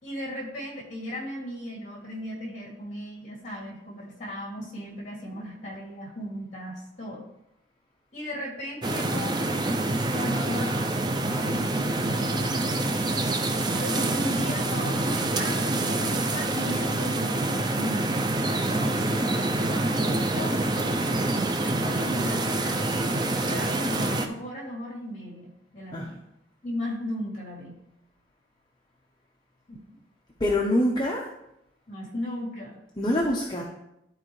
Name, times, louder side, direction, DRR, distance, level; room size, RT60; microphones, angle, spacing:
voice 1, 0.0-7.2 8.1-9.5 10.1-10.9 11.2-12.8 13.7-17.3 17.8-22.8 23.3-26.2 26.6-27.7 29.7-29.8 31.9-32.8, equal, 40° left, -2 dB, 2.7 m, -36 dB
sound 1, 8.8-24.3, right 2 dB, 25° right, 0.5 m, -26 dB
voice 2, 30.4-31.3 33.0-33.6, left 1 dB, 25° left, -3 dB, 0.9 m, -25 dB
12.5 x 4.4 x 3.2 m, 0.83 s
head